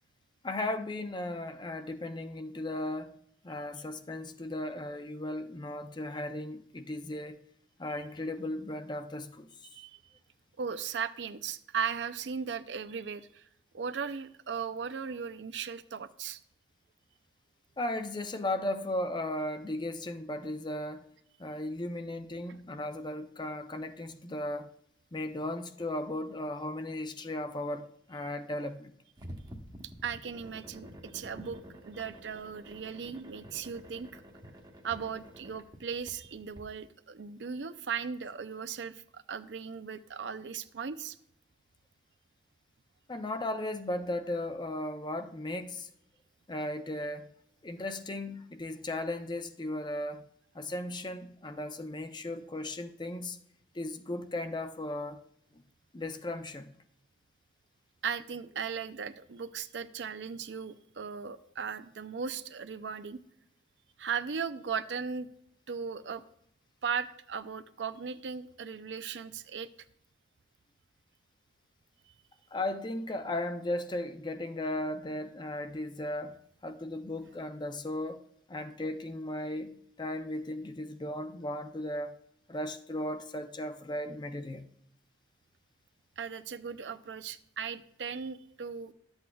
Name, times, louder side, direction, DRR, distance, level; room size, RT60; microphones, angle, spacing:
voice 1, 0.4-3.2 3.4-7.4 7.8-9.5 17.8-21.1 21.4-24.7 25.1-28.9 43.1-45.9 46.5-47.3 47.6-50.2 50.5-53.4 53.7-55.2 55.5-55.6 55.9-56.7 72.5-76.4 76.6-78.2 78.5-79.7 80.0-82.1 82.5-84.6, left 1 dB, 25° left, 0.6 m, -36 dB
voice 2, 10.6-13.5 13.7-16.4 30.0-31.6 31.9-34.2 34.8-41.2 58.0-63.2 64.0-65.3 65.7-66.2 66.8-69.7 86.2-88.9, right 6 dB, 90° right, 0.5 m, -37 dB
sound 1, 29.2-36.6, equal, 25° right, 1.0 m, -49 dB
12.0 x 8.0 x 2.3 m
head